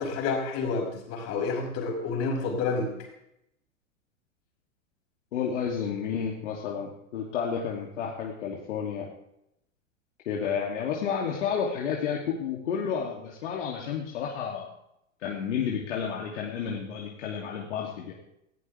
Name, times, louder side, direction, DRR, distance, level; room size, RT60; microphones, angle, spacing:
voice 1, 0.0-2.9, left 4 dB, 40° left, 2 dB, 5.9 m, -29 dB
voice 2, 5.3-9.1 10.2-14.7 15.2-18.1, left 7 dB, 60° left, -3 dB, 3.1 m, -31 dB
20.0 x 16.0 x 3.6 m, 0.79 s
figure-of-eight pair, 95°, 40 cm